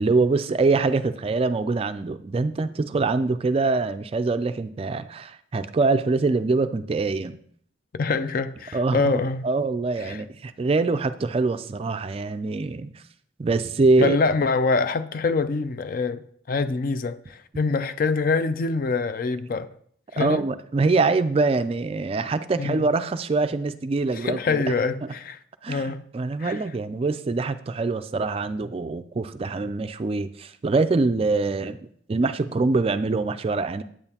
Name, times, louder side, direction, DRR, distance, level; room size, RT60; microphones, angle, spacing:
voice 1, 0.0-7.4 8.7-9.1 9.4-12.9 13.4-14.2 20.2-24.8 25.6-33.8, right 3 dB, 30° right, 0.3 m, -24 dB
voice 2, 7.9-9.5 10.0-10.2 14.0-19.7 20.1-20.4 22.6-22.9 24.2-25.4 25.7-26.0 26.4-26.6, left 4 dB, 50° left, 0.4 m, -25 dB
8.8 x 8.7 x 2.8 m
head